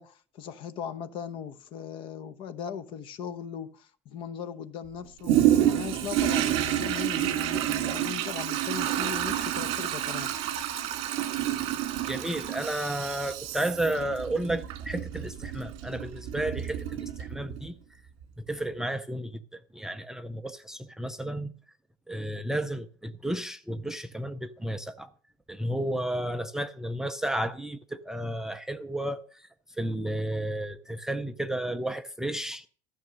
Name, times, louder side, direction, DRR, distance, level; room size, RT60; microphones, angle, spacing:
voice 1, 0.0-10.3, left 8 dB, 45° left, 1.0 m, -38 dB
Toilet flush, 5.2-17.7 18.2-18.3, right 12 dB, 60° right, 2.1 m, -29 dB
voice 2, 12.1-17.7 18.5-19.4 19.7-21.5 22.1-25.1 25.5-29.5 29.8-32.7, right 1 dB, 5° right, 0.5 m, -32 dB
14.0 x 6.4 x 6.3 m
cardioid pair, 155°, 12 cm